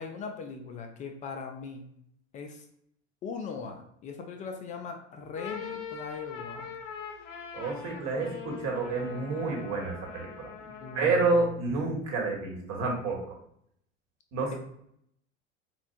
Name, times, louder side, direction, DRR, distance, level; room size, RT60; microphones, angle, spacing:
voice 1, 0.0-1.9 2.3-2.6 3.2-6.7 10.6-11.3, left 5 dB, 20° left, 4 dB, 0.3 m, -39 dB
sound 1, 5.2-11.2, left 7 dB, 75° left, 0.6 m, -42 dB
voice 2, 7.5-10.5 10.9-13.4 14.3-14.6, right 3 dB, 45° right, -1 dB, 1.2 m, -29 dB
4.2 x 2.2 x 2.4 m, 0.71 s
figure-of-eight pair, 75°, 38 cm